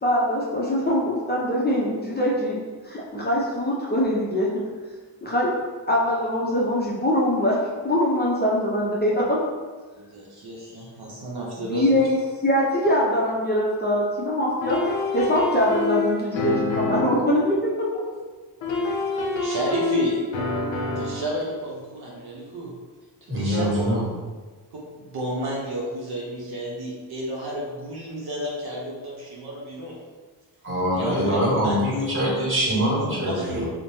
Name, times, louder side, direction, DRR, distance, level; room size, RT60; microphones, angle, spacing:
voice 1, 0.0-2.6 2.8-4.6 5.2-5.6 5.9-9.4 11.6-14.8 15.1-18.1, left 1 dB, 25° left, -5 dB, 0.5 m, -23 dB
voice 2, 10.0-11.8 19.3-20.2 21.0-22.7 23.3-23.9 24.7-30.0 30.9-31.8 32.9-33.6, right 1 dB, 60° right, -4 dB, 0.7 m, -31 dB
sound 1, 14.6-17.3 18.6-21.3, left 3 dB, 85° left, 0.6 m, -26 dB
voice 3, 23.3-24.0 30.6-33.7, equal, 25° right, -6 dB, 1.4 m, -23 dB
3.0 x 2.1 x 2.7 m, 1.4 s
cardioid pair, 60°, 45 cm